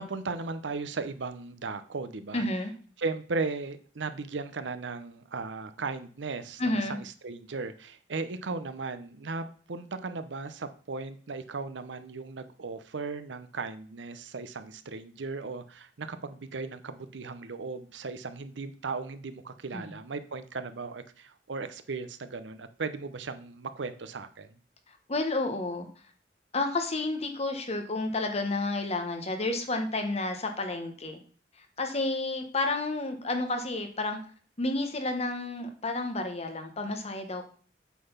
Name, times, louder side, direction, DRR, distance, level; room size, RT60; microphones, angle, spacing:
voice 1, 0.0-2.4 3.0-24.6, right 4 dB, 85° right, 11 dB, 0.7 m, -36 dB
voice 2, 2.3-2.7 6.6-7.0 19.7-19.8 24.9-25.9 26.5-31.2 31.8-34.2 34.6-37.5, left 2 dB, 35° left, 5 dB, 1.2 m, -31 dB
8.3 x 4.0 x 5.6 m, 0.43 s
head